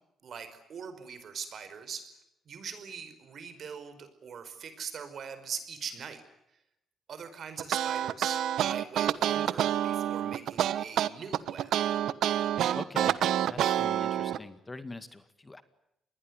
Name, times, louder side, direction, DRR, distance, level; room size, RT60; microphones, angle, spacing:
voice 1, 0.2-2.0 2.4-6.2 7.1-11.7, right 6 dB, 55° right, 10 dB, 5.0 m, -42 dB
sound 1, 7.6-14.4, right 11 dB, 75° right, 1.1 m, -28 dB
voice 2, 12.7-13.2 13.5-15.6, left 2 dB, 20° left, 11 dB, 2.0 m, -43 dB
27.5 x 21.0 x 9.6 m, 0.83 s
cardioid pair, 90°, 0 cm